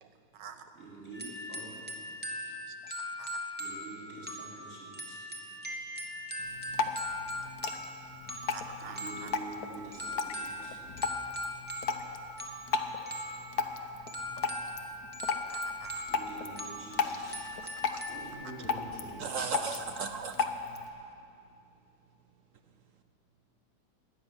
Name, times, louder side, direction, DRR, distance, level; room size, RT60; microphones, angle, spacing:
voice 1, 0.0-0.6 2.5-3.4 8.5-9.3 14.8-14.9 15.5-16.0 17.9-18.0, right 8 dB, 85° right, 8 dB, 1.6 m, -49 dB
voice 2, 0.7-2.0 3.6-5.2 6.6-6.7 8.8-10.7 16.1-17.4 17.8-19.6, right 2 dB, 35° right, -7 dB, 3.9 m, -46 dB
sound 1, 1.1-18.3, left 1 dB, 5° right, 1.1 m, -41 dB
Drip, 6.4-20.9, left 5 dB, 65° left, 1.2 m, -36 dB
voice 3, 19.2-20.5, right 5 dB, 70° right, 8 dB, 0.8 m, -35 dB
13.5 x 9.8 x 9.7 m, 2.6 s
omnidirectional pair, 1.9 m